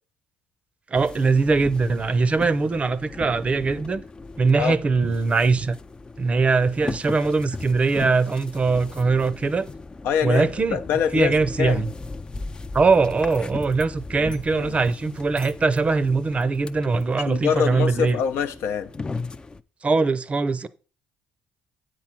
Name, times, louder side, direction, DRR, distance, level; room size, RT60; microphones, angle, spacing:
sound 1, 0.9-19.6, left 3 dB, 20° left, 0.4 m, -37 dB
voice 1, 0.9-4.0 4.4-5.8 6.2-9.7 10.2-10.8 11.1-11.9 12.7-18.2 19.8-20.7, right 4 dB, 30° right, 0.6 m, -21 dB
voice 2, 10.0-11.8 14.2-14.8 17.3-18.9, left 8 dB, 70° left, 0.7 m, -25 dB
8.1 x 4.7 x 5.9 m
supercardioid pair, 75°, 4 cm